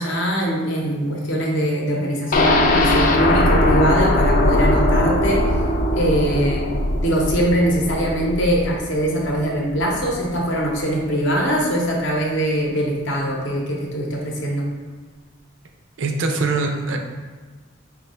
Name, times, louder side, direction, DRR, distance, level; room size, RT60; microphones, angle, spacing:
voice 1, 0.0-5.6 5.9-6.6 7.0-14.7, equal, 70° left, -1 dB, 0.7 m, -22 dB
sound 1, 2.3-10.2 10.5-10.6 11.0-11.1, left 1 dB, 40° left, 0.4 m, -20 dB
voice 2, 16.0-17.0, right 3 dB, 70° right, 3 dB, 0.5 m, -22 dB
3.6 x 2.3 x 4.1 m, 1.4 s
head